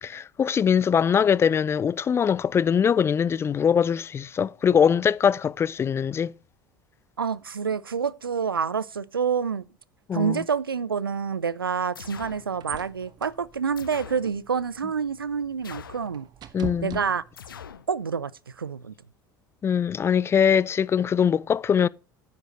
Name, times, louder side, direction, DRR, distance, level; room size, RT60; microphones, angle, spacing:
voice 1, 0.0-6.3 10.1-10.4 16.5-17.0 19.6-21.9, left 7 dB, 20° left, 0.4 m, -22 dB
voice 2, 7.2-9.6 10.1-16.3 16.8-17.2 17.9-18.3 18.6-18.9, right 6 dB, 85° right, 0.4 m, -27 dB
sound 1, 11.9-12.5 13.8-14.3 15.6-16.1 17.4-17.9, left 7 dB, 75° left, 0.7 m, -42 dB
sound 2, 11.9-17.7, right 10 dB, 35° right, 1.0 m, -43 dB
10.5 x 9.4 x 3.1 m
figure-of-eight pair, 70°, 12 cm